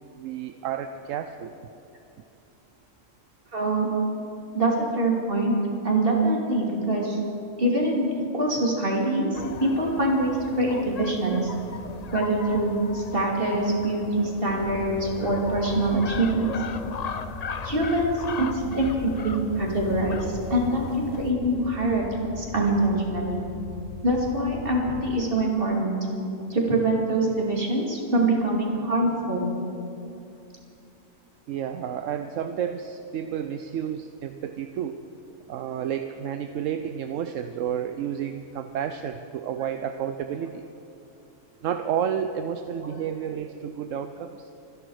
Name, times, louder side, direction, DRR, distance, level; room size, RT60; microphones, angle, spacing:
voice 1, 0.2-1.5 31.5-35.0 35.5-40.6 41.6-44.5, right 8 dB, 75° right, 8 dB, 1.0 m, -31 dB
voice 2, 3.5-3.9 4.5-5.5 5.8-7.2 7.6-11.5 12.1-16.5 17.6-23.4 24.0-26.0 26.5-29.4 42.8-43.0, right 2 dB, 45° right, -1 dB, 2.7 m, -24 dB
sound 1, 9.3-21.3, left 5 dB, 45° left, 0.5 m, -38 dB
sound 2, 14.6-25.1, left 4 dB, 75° left, 2.7 m, -40 dB
26.0 x 10.5 x 4.8 m, 2.7 s
omnidirectional pair, 1.4 m